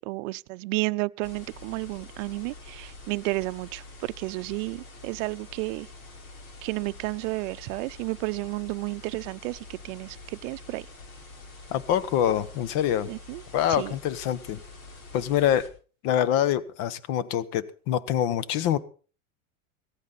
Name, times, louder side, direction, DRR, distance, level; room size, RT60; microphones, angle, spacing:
voice 1, 0.0-5.9 6.6-10.9 13.1-13.4 13.7-13.9, right 23 dB, 65° right, 0.6 m, -32 dB
sound 1, 1.2-15.7, left 2 dB, 80° left, 4.4 m, -46 dB
voice 2, 11.7-13.1 13.5-14.6 15.1-15.7 16.0-18.8, left 10 dB, 50° left, 1.2 m, -25 dB
17.5 x 14.5 x 4.1 m
supercardioid pair, 140°, 41 cm